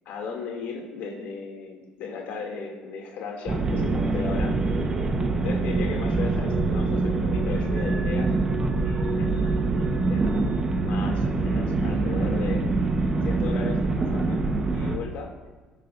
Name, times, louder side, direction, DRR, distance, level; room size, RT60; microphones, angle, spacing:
voice 1, 0.0-4.6 5.4-8.3 8.8-10.3 10.8-12.6 13.2-14.4 14.7-15.3, left 5 dB, 80° left, 0 dB, 2.7 m, -36 dB
sound 1, 3.5-15.0, right 3 dB, 30° right, 1.2 m, -24 dB
22.0 x 11.0 x 2.7 m, 1.3 s
cardioid pair, 135°, 3 cm